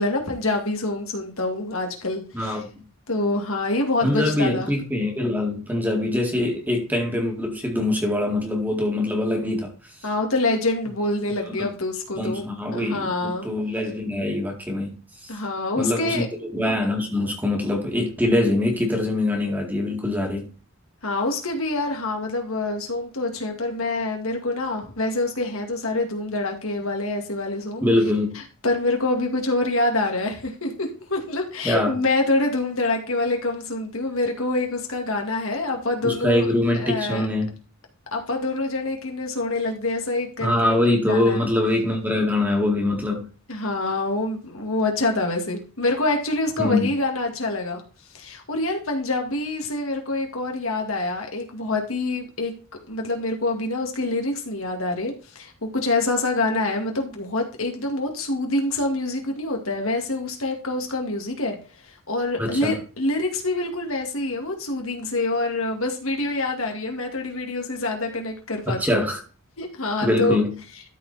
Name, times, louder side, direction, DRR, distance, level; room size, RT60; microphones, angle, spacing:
voice 1, 0.0-2.6 3.1-4.7 10.0-13.5 15.3-16.3 21.0-27.9 28.4-36.5 36.7-37.2 38.1-40.8 41.1-41.4 43.5-47.8 48.1-52.5 52.9-61.6 61.9-69.0 69.6-70.4, left 2 dB, 70° left, 2.2 m, -26 dB
voice 2, 2.3-2.8 4.0-9.7 11.5-11.7 12.1-15.0 15.2-15.3 15.8-16.3 16.5-20.5 27.8-28.4 31.6-32.0 36.0-37.5 40.4-43.3 46.6-46.9 62.4-62.8 68.7-69.2 70.0-70.6, left 1 dB, 10° right, 2.0 m, -23 dB
13.0 x 4.5 x 4.1 m
head